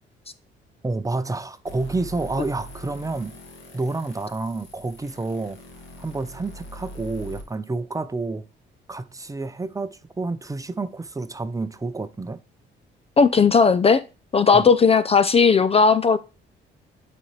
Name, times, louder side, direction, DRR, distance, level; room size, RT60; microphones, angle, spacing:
voice 1, 0.8-3.4 3.7-5.6 6.0-8.4 8.9-12.4 14.5-14.7, right 3 dB, 15° right, 0.7 m, -29 dB
sound 1, 1.7-7.4, equal, 75° left, 2.1 m, -42 dB
voice 2, 13.2-14.0 14.3-16.2, left 5 dB, 30° left, 0.4 m, -16 dB
9.0 x 4.3 x 3.2 m
cardioid pair, 90°, 20 cm